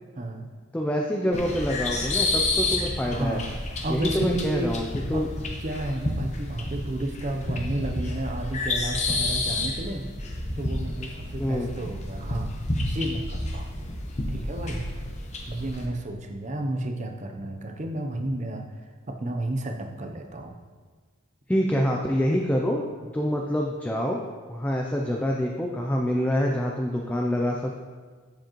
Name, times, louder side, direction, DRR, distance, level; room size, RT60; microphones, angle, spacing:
voice 1, 0.1-0.5 3.0-3.5 3.8-4.8 5.1-5.3 5.6-10.1 10.6-12.5 12.8-13.7 14.3-14.9 15.5-18.7 19.1-20.6, right 1 dB, 35° right, 4 dB, 0.6 m, -32 dB
voice 2, 0.7-3.4 3.9-4.9 5.1-5.3 11.4-11.7 21.5-22.8 23.1-24.2 24.5-27.8, equal, 5° left, -1 dB, 0.3 m, -26 dB
sound 1, 1.3-15.9, left 2 dB, 35° left, 0.8 m, -30 dB
7.5 x 7.0 x 3.0 m, 1.5 s
head